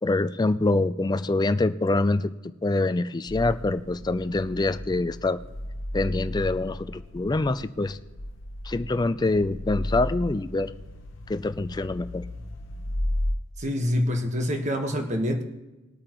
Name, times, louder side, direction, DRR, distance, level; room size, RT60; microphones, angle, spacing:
voice 1, 0.0-2.3 2.6-5.4 5.9-8.0 8.6-10.7 11.3-12.2, left 2 dB, 20° left, 13 dB, 0.4 m, -25 dB
sound 1, 3.3-13.3, left 1 dB, 65° left, 0.9 m, -34 dB
voice 2, 13.6-15.4, left 1 dB, 35° right, 3 dB, 1.4 m, -26 dB
20.5 x 8.7 x 3.1 m, 1.1 s
head